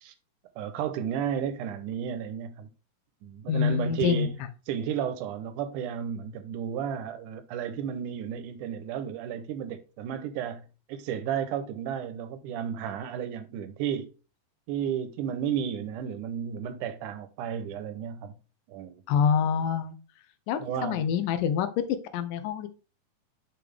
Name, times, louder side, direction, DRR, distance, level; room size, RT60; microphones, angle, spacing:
voice 1, 0.6-2.7 3.2-4.4 4.7-14.1 14.7-18.3 18.7-19.0 20.6-21.0, right 8 dB, 75° right, 2.3 m, -33 dB
voice 2, 3.5-4.3 19.1-20.0 20.5-22.7, left 7 dB, 80° left, 2.4 m, -26 dB
6.7 x 5.9 x 3.5 m
omnidirectional pair, 3.8 m